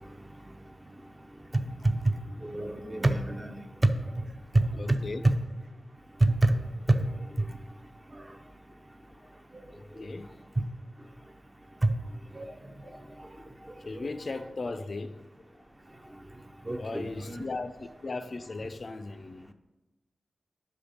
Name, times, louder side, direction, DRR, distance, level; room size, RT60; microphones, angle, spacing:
voice 1, 2.4-3.5 6.4-6.5 6.9-7.0 12.4-12.5 16.7-17.4, right 2 dB, 20° right, 7 dB, 0.5 m, -28 dB
voice 2, 4.7-5.3 8.4-8.5 9.1-9.3 9.7-10.4 12.8-13.1 13.4-16.2 16.8-19.5, left 3 dB, 45° left, 11 dB, 0.3 m, -38 dB
5.4 x 5.1 x 6.3 m, 1.0 s
wide cardioid pair, 115°, 0 cm